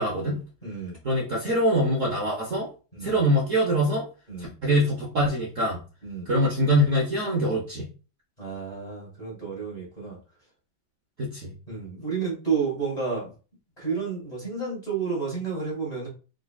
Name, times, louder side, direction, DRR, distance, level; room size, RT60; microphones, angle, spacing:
voice 1, 0.0-0.4 1.0-2.7 3.0-4.1 4.4-5.8 6.3-7.9 11.2-11.5, equal, 55° right, -3 dB, 1.0 m, -24 dB
voice 2, 0.6-1.0 2.9-3.1 4.3-4.5 6.0-6.3 8.4-10.2 11.7-13.3 13.8-16.1, right 5 dB, 20° left, -4 dB, 1.4 m, -31 dB
3.8 x 3.2 x 2.2 m, 0.35 s
omnidirectional pair, 2.1 m